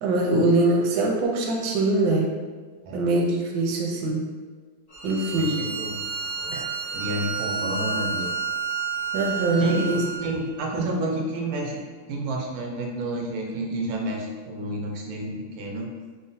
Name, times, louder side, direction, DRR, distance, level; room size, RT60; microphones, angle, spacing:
voice 1, 0.0-2.3 2.9-4.2 5.0-5.6 6.5-6.7 9.1-10.0, right 2 dB, 70° right, -1 dB, 1.0 m, -23 dB
Bowed string instrument, 4.9-10.3, right 5 dB, 70° left, 0.3 m, -30 dB
voice 2, 5.3-6.1 6.4-6.6 6.9-8.4 9.6-11.8 12.1-15.9, right 1 dB, 90° right, 0 dB, 1.4 m, -30 dB
3.8 x 2.0 x 2.6 m, 1.5 s
omnidirectional pair, 2.2 m